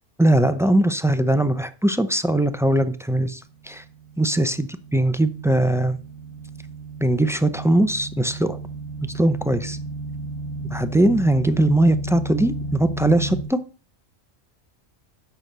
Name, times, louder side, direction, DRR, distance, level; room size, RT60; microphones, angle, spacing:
voice 1, 0.2-3.8 4.2-6.0 7.0-8.6 9.1-9.8 10.7-13.6, right 1 dB, 5° right, 10 dB, 0.3 m, -20 dB
sound 1, 3.8-13.4, right 2 dB, 60° left, 1.8 m, -33 dB
9.1 x 6.2 x 6.7 m, 0.39 s
omnidirectional pair, 1.2 m